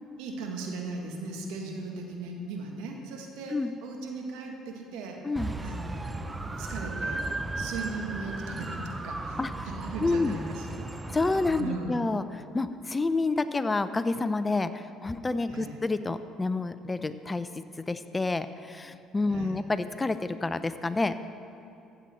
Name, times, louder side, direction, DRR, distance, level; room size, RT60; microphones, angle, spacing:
voice 1, 0.2-5.2 5.6-6.2 6.6-7.3 7.6-10.9 11.5-12.0 15.5-15.8 19.3-19.6, right 3 dB, 80° right, 1 dB, 1.6 m, -38 dB
sound 1, 5.4-11.6, right 2 dB, 15° right, 0.7 m, -35 dB
voice 2, 10.0-10.3 11.1-17.5 17.8-21.2, left 3 dB, 20° left, 12 dB, 0.5 m, -29 dB
15.0 x 7.8 x 4.4 m, 2.7 s
supercardioid pair, 70°, 0 cm